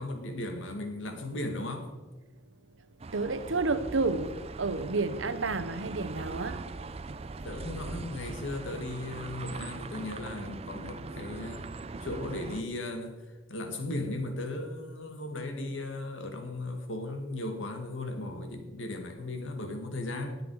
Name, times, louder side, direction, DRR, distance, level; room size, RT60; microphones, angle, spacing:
voice 1, 0.0-1.9 5.4-5.6 7.4-20.4, left 2 dB, 85° left, 2.1 m, -37 dB
sound 1, 3.0-12.6, right 3 dB, 30° right, 0.5 m, -41 dB
voice 2, 3.1-6.7, right 3 dB, 85° right, 0.9 m, -30 dB
19.0 x 7.9 x 4.9 m
head